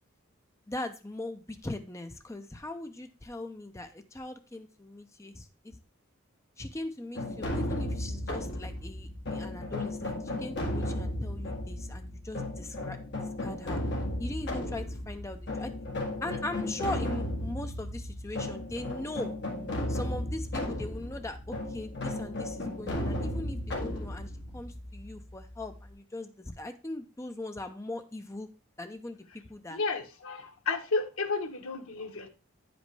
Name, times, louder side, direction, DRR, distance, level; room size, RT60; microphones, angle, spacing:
voice 1, 0.7-5.8 6.6-13.8 14.2-15.7 16.2-19.4 19.9-28.5 28.8-29.8, left 1 dB, 15° left, 7 dB, 0.5 m, -40 dB
sound 1, 7.1-25.9, left 1 dB, 55° left, 1.8 m, -35 dB
voice 2, 29.7-32.3, left 4 dB, 90° left, 5 dB, 1.0 m, -32 dB
9.1 x 5.2 x 3.2 m, 0.32 s
head